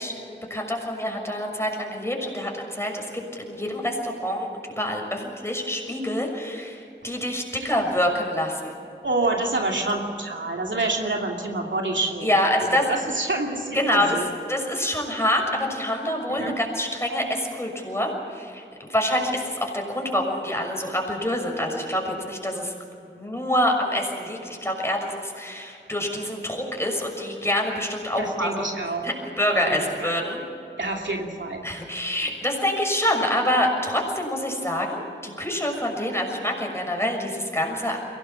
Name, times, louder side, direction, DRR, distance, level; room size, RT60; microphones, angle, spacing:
voice 1, 0.0-8.7 12.2-12.9 13.7-14.2 14.5-18.6 18.9-22.7 23.1-28.7 29.0-30.4 31.6-38.0, left 1 dB, 15° left, 1 dB, 6.3 m, -26 dB
voice 2, 9.0-14.3 16.4-16.5 28.2-29.0 29.7-30.1 30.8-31.6, right 2 dB, 70° right, 1 dB, 2.8 m, -28 dB
23.0 x 18.0 x 7.4 m, 2.7 s
wide cardioid pair, 40°, 20 cm